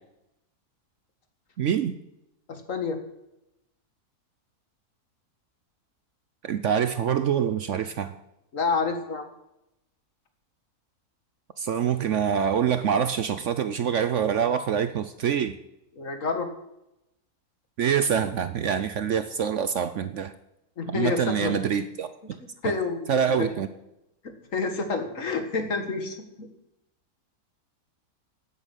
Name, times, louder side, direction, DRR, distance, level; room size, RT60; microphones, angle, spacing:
voice 1, 1.6-1.9 6.4-8.1 11.6-15.6 17.8-20.3 20.9-22.4 22.6-22.8 23.1-23.7, right 8 dB, 60° right, 12 dB, 0.9 m, -25 dB
voice 2, 2.5-3.0 8.5-9.3 16.0-16.5 20.8-21.5 22.6-23.6 24.2-26.5, left 4 dB, 55° left, 7 dB, 2.0 m, -29 dB
12.5 x 8.8 x 8.4 m, 0.88 s
omnidirectional pair, 1.6 m